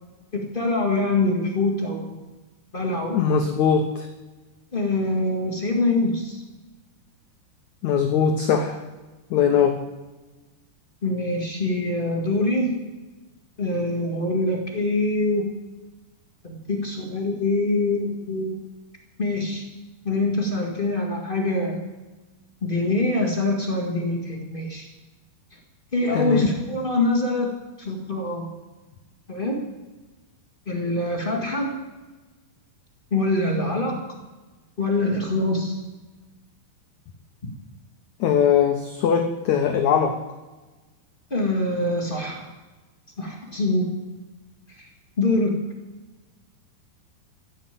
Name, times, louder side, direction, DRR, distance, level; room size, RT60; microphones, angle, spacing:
voice 1, 0.3-2.2 2.7-3.2 4.7-6.4 11.0-12.7 13.6-15.4 16.4-18.6 19.2-19.6 20.0-21.8 22.6-24.9 25.9-27.5 27.8-28.5 29.3-29.6 30.6-31.7 33.1-34.0 34.8-35.8 41.3-42.5 43.2-43.9 44.7-44.8 45.2-45.6, left 2 dB, 40° left, 0 dB, 0.7 m, -24 dB
voice 2, 3.1-4.1 7.8-8.8 9.3-9.8 26.1-26.4 38.2-40.2, left 7 dB, 80° left, 5 dB, 1.7 m, -20 dB
15.0 x 7.0 x 9.2 m, 1.2 s
omnidirectional pair, 4.6 m